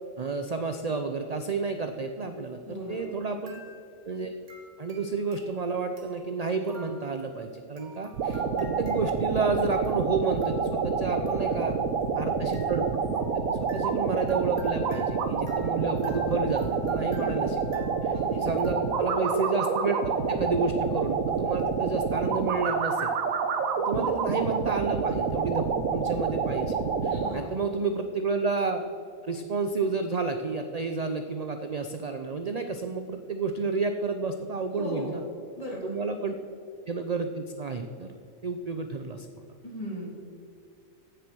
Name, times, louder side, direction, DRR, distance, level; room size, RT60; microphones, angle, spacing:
voice 1, 0.2-3.6 4.1-4.3 4.8-11.8 12.2-20.0 20.3-23.1 23.8-25.6 25.9-28.8 29.2-35.2 35.8-36.4 36.9-38.2 38.4-39.4, right 4 dB, 45° right, 6 dB, 0.5 m, -31 dB
voice 2, 2.6-3.0 11.1-11.6 17.1-17.3 18.1-18.6 23.9-24.1 27.1-27.5 34.7-35.3 35.6-36.0 39.6-40.1, equal, 25° left, -4 dB, 3.3 m, -38 dB
sound 1, 2.9-3.2 3.5-4.1 4.5-19.4, right 2 dB, 65° right, 2.1 m, -52 dB
sound 2, 8.1-27.3, right 5 dB, 80° right, 1.3 m, -28 dB
15.0 x 6.9 x 6.2 m, 2.4 s
omnidirectional pair, 1.4 m